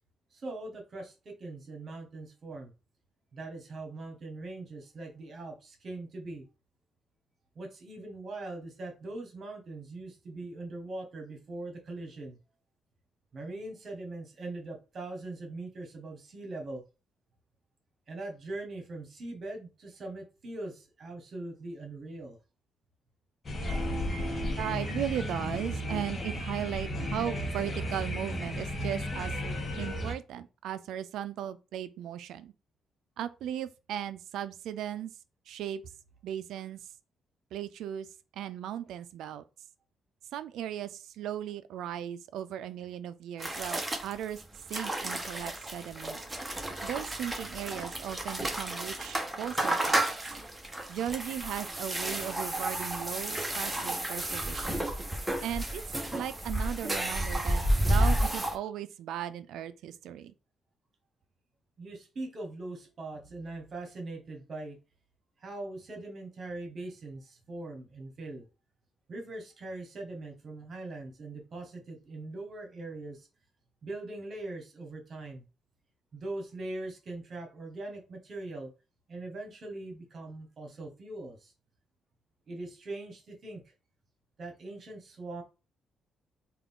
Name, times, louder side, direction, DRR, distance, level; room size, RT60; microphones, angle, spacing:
voice 1, 0.3-2.7 3.3-6.4 7.5-12.4 13.3-16.8 18.1-22.4 61.8-64.8 65.4-68.5 69.1-73.3 73.8-75.4 76.1-78.7 79.1-81.5 82.5-83.6 84.4-85.4, right 2 dB, 50° right, 1.3 m, -41 dB
sound 1, 23.4-30.1, equal, 35° left, 1.0 m, -34 dB
voice 2, 24.6-29.3 29.8-32.5 33.2-35.1 35.5-35.8 36.2-36.8 37.5-38.1 38.3-39.4 40.3-44.4 44.7-46.2 46.8-50.1 50.9-54.8 55.4-55.8 56.2-60.3, right 10 dB, 80° right, 0.4 m, -37 dB
sound 2, 43.4-58.6, right 1 dB, 10° right, 0.9 m, -31 dB
3.6 x 2.5 x 3.5 m
cardioid pair, 90°, 0 cm